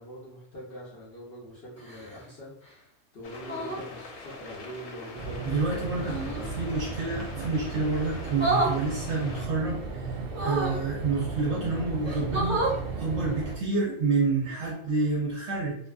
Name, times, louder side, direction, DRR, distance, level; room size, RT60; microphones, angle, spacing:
voice 1, 0.0-6.6, equal, 55° left, -7 dB, 0.8 m, -43 dB
sound 1, 1.8-2.2 3.4-3.9 6.1-6.5 8.3-8.8 10.3-10.8 11.6-11.7 12.0-12.8 14.4-14.7, right 2 dB, 15° left, 0.6 m, -29 dB
sound 2, 3.2-9.5, left 3 dB, 80° left, 1.1 m, -44 dB
sound 3, 5.1-13.6, right 4 dB, 75° right, 0.5 m, -36 dB
voice 2, 5.4-6.1 6.6-9.8 10.4-12.6 13.0-15.8, right 3 dB, 60° right, -3 dB, 0.8 m, -28 dB
2.5 x 2.5 x 2.3 m, 0.70 s
omnidirectional pair, 1.5 m